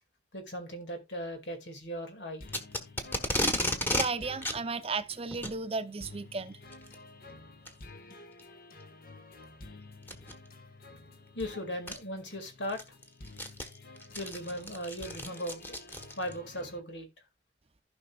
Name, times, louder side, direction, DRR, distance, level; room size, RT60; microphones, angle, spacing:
voice 1, 0.3-2.4 11.3-12.8 14.2-15.8 16.2-17.1, equal, 85° left, 2.3 m, -38 dB
sound 1, 2.4-16.8, left 2 dB, 55° left, 1.3 m, -51 dB
Packing tape duct tape, 2.5-4.1 4.4-4.6 5.3-5.6 6.7-6.9 7.6-7.7 8.4-8.5 10.0-10.3 11.4-11.5 11.9-12.0 12.5-16.4, left 1 dB, 10° left, 1.3 m, -33 dB
voice 2, 3.9-6.6, right 4 dB, 35° right, 0.7 m, -34 dB
15.5 x 5.4 x 2.4 m
head